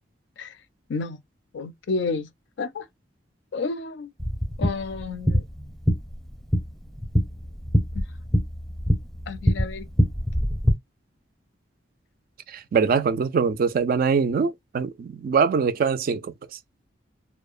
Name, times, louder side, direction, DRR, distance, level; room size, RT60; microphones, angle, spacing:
voice 1, 1.5-2.3 2.6-2.9 3.5-4.1 4.6-5.5 7.9-8.1 9.3-9.9, left 4 dB, 70° left, 0.4 m, -30 dB
sound 1, 4.2-10.7, equal, ahead, 0.6 m, -24 dB
voice 2, 12.5-16.3, right 5 dB, 50° right, 0.3 m, -23 dB
2.7 x 2.0 x 2.3 m
head